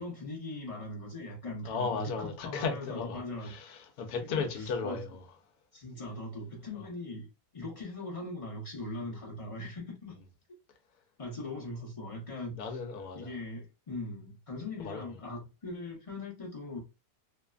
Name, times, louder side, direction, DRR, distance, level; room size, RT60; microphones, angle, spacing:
voice 1, 0.0-3.5 4.3-5.0 5.7-7.3 7.5-10.1 11.2-12.8 13.1-16.8, left 2 dB, 35° left, 0.5 m, -40 dB
voice 2, 1.6-5.2 6.8-6.9 12.6-13.3 14.8-15.0, left 5 dB, 70° left, 1.0 m, -35 dB
3.2 x 2.1 x 2.3 m
omnidirectional pair, 1.8 m